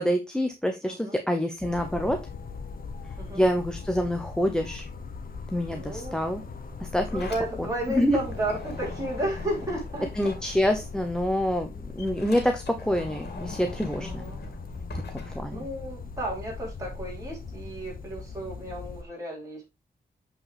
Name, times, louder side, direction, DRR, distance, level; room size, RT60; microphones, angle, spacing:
voice 1, 0.0-2.2 3.3-4.8 5.5-6.4 6.9-7.3 8.0-8.2 10.2-14.2 15.1-15.7, equal, 5° left, 5 dB, 0.9 m, -26 dB
voice 2, 0.8-1.2 3.2-3.4 5.7-6.4 7.1-10.1 14.0-14.4 15.5-19.7, right 1 dB, 20° right, -4 dB, 3.8 m, -33 dB
sound 1, 1.6-19.0, left 4 dB, 55° left, 1.1 m, -40 dB
Sliding door, 6.9-11.0 11.4-16.1, left 3 dB, 75° left, 2.5 m, -42 dB
8.3 x 4.9 x 3.4 m, 0.24 s
wide cardioid pair, 100°, 17 cm